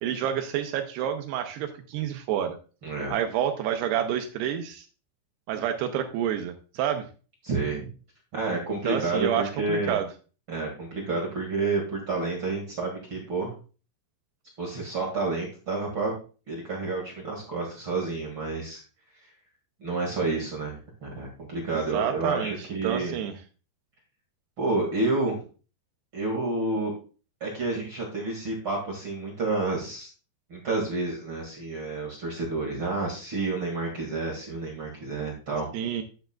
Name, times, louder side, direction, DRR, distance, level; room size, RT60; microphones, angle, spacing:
voice 1, 0.0-2.6 3.1-4.9 5.5-7.1 8.8-10.1 21.7-23.3 35.7-36.0, right 10 dB, 80° right, 6 dB, 2.6 m, -29 dB
voice 2, 2.8-3.1 7.4-7.9 8.3-10.0 10.5-13.5 14.6-16.1 16.5-18.8 19.8-23.1 24.6-25.4 26.1-26.9 27.4-30.1 30.5-35.7, right 3 dB, 45° right, -2 dB, 1.7 m, -29 dB
11.0 x 7.8 x 2.3 m, 0.36 s
omnidirectional pair, 5.1 m